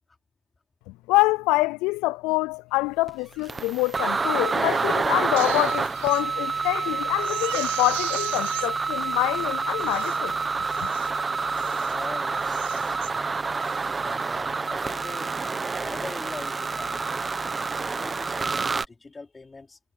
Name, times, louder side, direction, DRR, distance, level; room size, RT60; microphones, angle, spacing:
voice 1, 1.1-10.3, left 21 dB, 60° left, 0.3 m, -25 dB
sound 1, 3.1-3.2 3.5-18.9, right 4 dB, 15° right, 1.2 m, -28 dB
Crying sobbing, 5.2-6.2 6.7-6.8 7.2-8.7 9.4-9.5 9.8-10.2 10.7-11.1 11.5-12.0 12.4-13.1 13.6-13.9, right 20 dB, 90° right, 3.2 m, -37 dB
voice 2, 11.9-13.4 13.9-15.4 15.8-19.8, left 3 dB, 15° left, 3.2 m, -43 dB
supercardioid pair, 135°, 0 cm